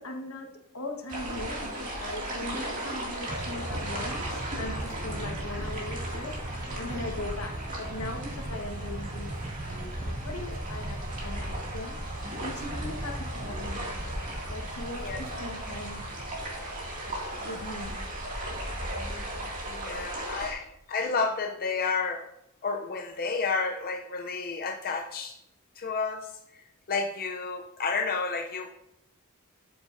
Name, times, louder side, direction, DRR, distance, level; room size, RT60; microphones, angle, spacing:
voice 1, 0.0-6.4 6.8-9.3 9.6-12.0 12.4-13.9 14.5-16.0 17.4-18.0 18.5-18.7 19.4-19.9, left 2 dB, 75° left, 2 dB, 1.5 m, -40 dB
sound 1, 1.1-20.5, right 1 dB, 40° right, 2.4 m, -36 dB
sound 2, 3.3-17.2, right 2 dB, 20° right, 0.4 m, -40 dB
voice 2, 15.0-15.4 19.8-22.2 22.6-25.3 25.8-26.3 26.9-28.7, left 4 dB, 45° left, 2 dB, 0.6 m, -31 dB
12.5 x 7.2 x 2.7 m, 0.85 s
head